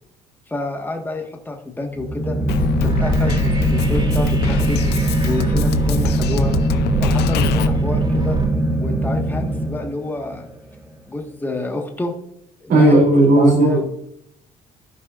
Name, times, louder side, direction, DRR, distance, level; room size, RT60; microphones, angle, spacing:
voice 1, 0.5-2.4 2.8-4.8 5.2-6.5 7.0-8.4 8.8-10.5 11.1-12.1 12.6-13.0 13.3-13.8, left 2 dB, 10° left, 2 dB, 1.6 m, -28 dB
sound 1, 1.9-10.2, right 1 dB, 10° right, 1.3 m, -21 dB
Drum kit, 2.5-7.7, left 10 dB, 75° left, 0.6 m, -24 dB
sound 2, 2.8-8.4, right 7 dB, 30° right, 2.9 m, -27 dB
voice 2, 12.7-13.8, right 1 dB, 75° right, -4 dB, 3.2 m, -13 dB
16.0 x 5.5 x 2.5 m, 0.75 s
cardioid pair, 110°, 17 cm